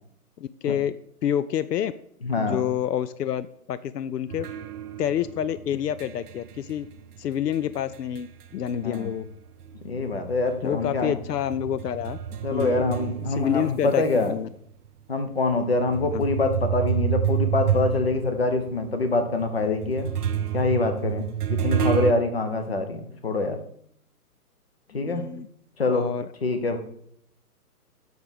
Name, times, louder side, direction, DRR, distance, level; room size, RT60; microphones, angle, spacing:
voice 1, 0.4-0.9 1.2-1.9 2.4-4.5 5.0-6.9 7.2-8.3 8.5-9.2 10.6-12.2 12.5-12.8 13.3-14.5 16.1-16.2 24.9-25.5 25.9-26.3, left 10 dB, 80° left, 14 dB, 0.5 m, -28 dB
voice 2, 2.2-2.7 8.7-9.1 9.8-11.1 12.4-14.3 15.1-20.1 20.5-23.6 24.9-25.3 25.8-26.1 26.4-26.8, left 3 dB, 40° left, 7 dB, 0.9 m, -25 dB
sound 1, 4.3-9.3 9.6-14.3 14.9-15.0 15.7-22.1, right 9 dB, 75° right, 0.6 m, -29 dB
6.2 x 5.0 x 5.2 m, 0.67 s
hypercardioid pair, 180°, 47 cm